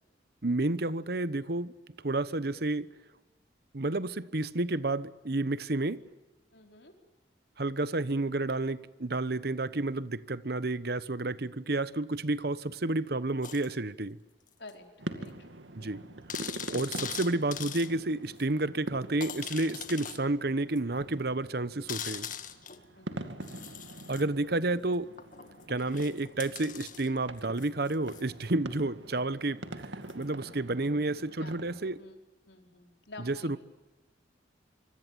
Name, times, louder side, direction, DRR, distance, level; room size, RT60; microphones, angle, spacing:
voice 1, 0.4-1.8 2.0-2.9 3.7-6.0 7.6-14.2 15.7-16.0 16.7-22.3 24.1-25.1 25.7-29.9 30.1-32.0 33.3-33.6, right 2 dB, 55° right, 1.1 m, -30 dB
voice 2, 6.5-6.9 14.6-14.9 15.1-16.1 22.9-23.4 24.1-24.2 30.8-31.1 31.4-31.6 32.0-32.1 32.5-33.6, left 2 dB, 75° left, 4.8 m, -50 dB
sound 1, 13.4-13.7 14.7-14.8 15.3-15.4 15.6-15.7 16.3-17.9 18.4-18.5 19.2-20.2 20.8-20.9 21.9-22.8 23.4-24.2 25.2-28.3 30.1-30.2, left 9 dB, 45° left, 1.8 m, -41 dB
sound 2, 15.0-32.0, right 1 dB, 85° right, 2.3 m, -45 dB
25.5 x 25.5 x 9.1 m
head